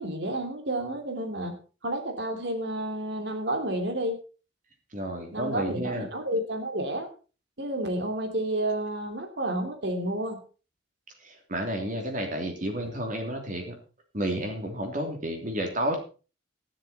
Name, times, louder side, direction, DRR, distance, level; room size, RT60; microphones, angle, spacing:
voice 1, 0.0-1.6 1.8-4.2 5.3-7.1 7.6-10.4, right 1 dB, 60° right, 5 dB, 3.0 m, -30 dB
voice 2, 4.9-6.1 11.2-13.8 14.1-16.0, right 1 dB, 40° right, 3 dB, 3.2 m, -31 dB
12.5 x 11.0 x 4.3 m, 0.35 s
head